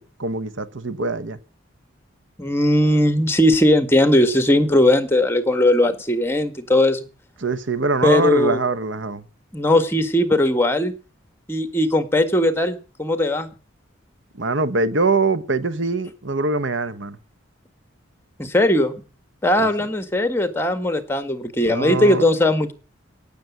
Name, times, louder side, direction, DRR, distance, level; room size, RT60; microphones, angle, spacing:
voice 1, 0.2-1.4 7.4-9.2 14.4-17.2 19.6-19.7 21.6-22.2, right 3 dB, 65° right, 1.1 m, -23 dB
voice 2, 2.4-7.1 8.0-8.6 9.5-10.9 11.5-13.5 18.4-19.0 19.4-22.7, left 1 dB, 10° left, 1.7 m, -18 dB
17.5 x 7.2 x 9.3 m
head